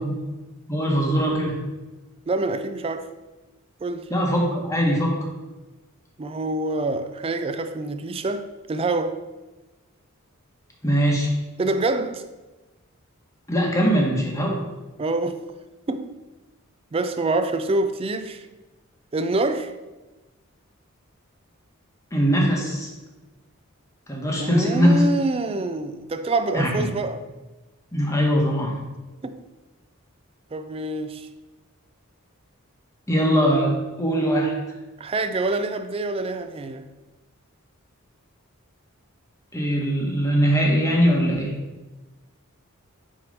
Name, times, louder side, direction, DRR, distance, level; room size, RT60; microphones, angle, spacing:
voice 1, 0.7-1.6 4.1-5.2 10.8-11.3 13.5-14.6 22.1-22.9 24.1-25.0 26.5-26.9 27.9-28.8 33.1-34.5 39.5-41.5, equal, 15° left, -1 dB, 1.1 m, -21 dB
voice 2, 2.3-3.1 3.8-4.1 6.2-9.2 11.6-12.2 15.0-15.4 15.9-16.1 16.9-18.5 19.1-19.7 24.4-27.2 29.2-29.4 30.5-31.3 35.0-36.9, right 2 dB, 25° right, 9 dB, 0.3 m, -26 dB
6.2 x 3.0 x 5.2 m, 1.1 s
head